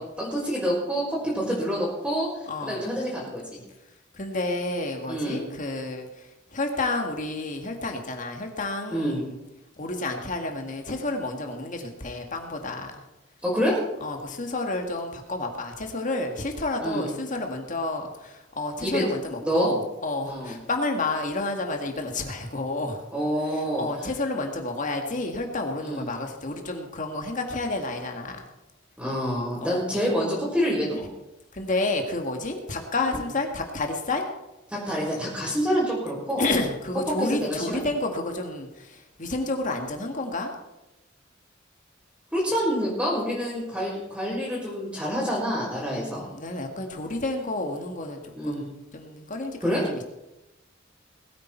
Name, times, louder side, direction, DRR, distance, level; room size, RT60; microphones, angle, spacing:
voice 1, 0.0-2.3 2.6-3.6 5.1-5.4 8.9-9.2 13.4-13.8 16.8-17.0 18.8-19.1 19.4-19.7 20.3-20.6 23.1-23.8 25.8-26.0 29.0-31.1 33.1-33.3 34.7-36.5 37.2-37.9 42.3-46.3 48.4-48.6 49.6-49.8, equal, 5° right, -9 dB, 4.4 m, -27 dB
voice 2, 2.5-2.8 4.1-9.4 9.8-13.0 14.0-23.1 23.4-28.4 29.6-29.8 30.9-31.0 31.5-34.3 36.4-40.5 45.8-50.0, left 2 dB, 40° left, 4 dB, 2.0 m, -30 dB
20.0 x 9.0 x 4.6 m, 0.98 s
head